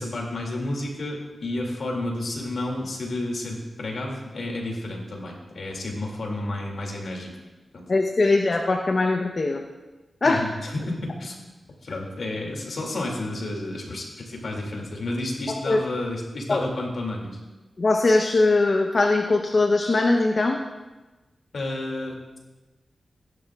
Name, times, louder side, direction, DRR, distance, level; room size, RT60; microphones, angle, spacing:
voice 1, 0.0-7.3 7.7-7.8 10.2-11.4 11.8-17.3 21.5-22.4, left 1 dB, 75° left, 0 dB, 2.5 m, -31 dB
voice 2, 7.9-9.6 10.2-10.4 15.5-15.8 16.5-16.7 17.8-20.6, left 2 dB, 50° left, 3 dB, 0.8 m, -21 dB
16.5 x 10.5 x 2.4 m, 1.2 s
cardioid pair, 60°, 0 cm